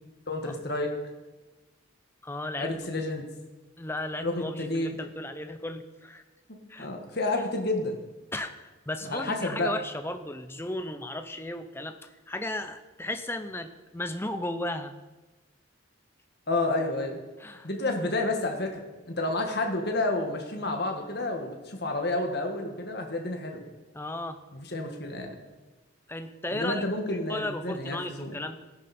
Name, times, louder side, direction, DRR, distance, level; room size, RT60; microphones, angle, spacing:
voice 1, 0.3-0.9 2.6-3.3 4.2-4.9 6.8-8.0 9.0-9.7 16.5-17.2 17.6-23.6 24.5-25.4 26.5-28.3, left 2 dB, 50° left, 3 dB, 1.8 m, -30 dB
voice 2, 2.2-2.7 3.8-6.2 6.7-6.9 8.3-12.0 12.3-14.9 17.4-17.7 23.9-24.4 26.1-26.8 27.3-28.6, left 1 dB, 10° left, 8 dB, 0.7 m, -35 dB
16.0 x 10.5 x 4.3 m, 1.2 s
head